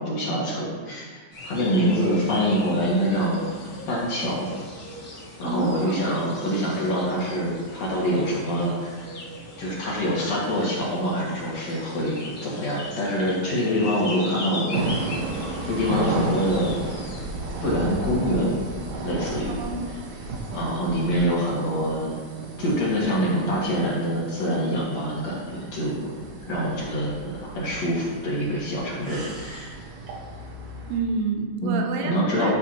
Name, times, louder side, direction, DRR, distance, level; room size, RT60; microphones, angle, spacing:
voice 1, 0.0-3.4 3.9-4.5 5.4-9.1 9.6-14.7 15.6-16.9 17.6-18.5 19.0-19.6 20.5-22.1 22.6-26.1 26.5-29.7 31.6-31.7 32.0-32.5, equal, 50° left, -6 dB, 2.6 m, -25 dB
sound 1, 1.3-17.3, left 2 dB, 85° left, 0.8 m, -39 dB
voice 2, 5.4-6.0 19.5-19.9 30.9-32.5, right 4 dB, 80° right, 3 dB, 2.8 m, -28 dB
sound 2, 14.7-31.0, right 2 dB, 60° right, 2.1 m, -33 dB
12.5 x 7.5 x 3.0 m, 1.5 s
omnidirectional pair, 4.6 m